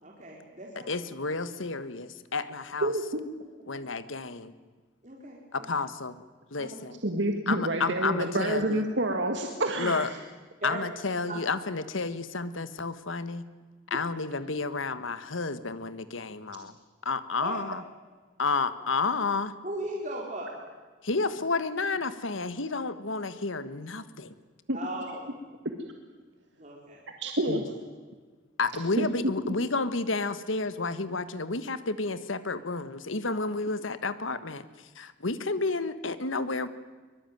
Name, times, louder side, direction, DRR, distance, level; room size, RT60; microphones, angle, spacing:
voice 1, 0.0-1.0 5.0-5.7 6.6-6.8 10.6-10.8 11.3-11.4 17.4-17.6 19.6-20.6 24.7-25.3 26.6-27.0, right 1 dB, 40° right, -3 dB, 4.0 m, -37 dB
voice 2, 0.9-2.9 3.7-4.5 5.5-6.2 6.5-7.0 7.5-8.8 9.8-10.1 10.6-13.4 13.9-16.7 17.0-17.8 18.4-19.5 21.0-24.3 27.5-27.6 28.6-34.6 34.9-36.7, left 3 dB, 90° left, 13 dB, 1.5 m, -31 dB
voice 3, 2.8-3.2 7.0-10.1 24.7-24.8 27.2-27.7 29.0-29.1, right 1 dB, 70° right, 4 dB, 2.0 m, -28 dB
23.5 x 22.0 x 9.4 m, 1.4 s
head